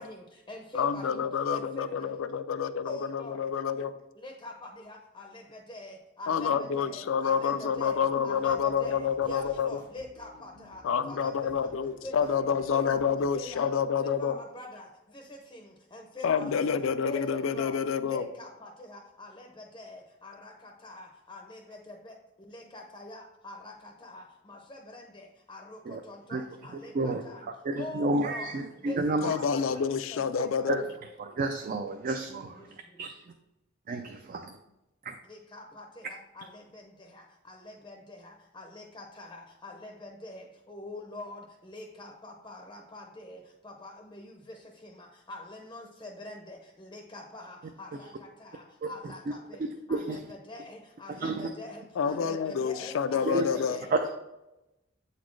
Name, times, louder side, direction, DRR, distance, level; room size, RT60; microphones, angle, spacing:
voice 1, 0.0-2.2 2.8-3.4 4.1-11.7 12.0-12.4 12.7-16.7 17.0-27.5 27.8-29.8 30.1-30.9 32.3-33.1 35.3-54.1, left 1 dB, 20° left, 0.5 m, -45 dB
voice 2, 0.8-3.9 6.3-9.8 10.8-14.4 16.2-18.3 29.2-30.8 52.0-53.8, left 6 dB, 75° left, 0.4 m, -28 dB
sound 1, 7.7-13.7, equal, 65° right, 1.2 m, -55 dB
voice 3, 27.6-29.4 30.7-30.8 31.2-32.6 33.0-33.2 33.9-34.4 35.1-35.2 49.0-49.1 49.9-50.2 51.2-51.5 53.3-53.5 53.9-54.0, right 2 dB, 45° right, 0.4 m, -30 dB
7.8 x 4.1 x 3.2 m
head